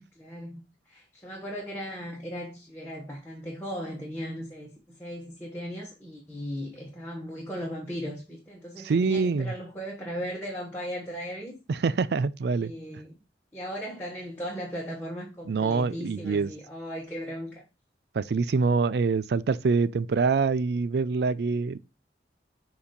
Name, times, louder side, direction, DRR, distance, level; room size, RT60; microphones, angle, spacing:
voice 1, 0.2-0.6 0.9-11.6 12.5-13.2 13.5-17.6, equal, 10° left, 1.2 m, -37 dB
voice 2, 8.8-9.5 11.7-12.7 15.5-16.5 18.1-21.8, right 4 dB, 65° right, 0.4 m, -25 dB
7.1 x 2.8 x 5.1 m
head